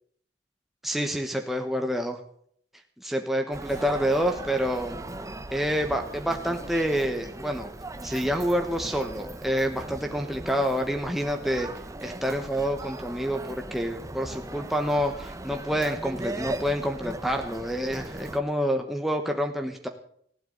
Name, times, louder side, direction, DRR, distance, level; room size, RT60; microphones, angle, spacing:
voice 1, 0.8-2.2 3.0-5.0 5.5-7.7 8.0-11.7 12.0-19.9, equal, ahead, 3 dB, 1.2 m, -28 dB
Human voice, 3.5-18.4, right 1 dB, 20° right, 0.8 m, -39 dB
Keyboard (musical), 3.7-9.5, right 2 dB, 40° left, 5.1 m, -55 dB
19.5 x 15.5 x 4.0 m, 0.63 s
head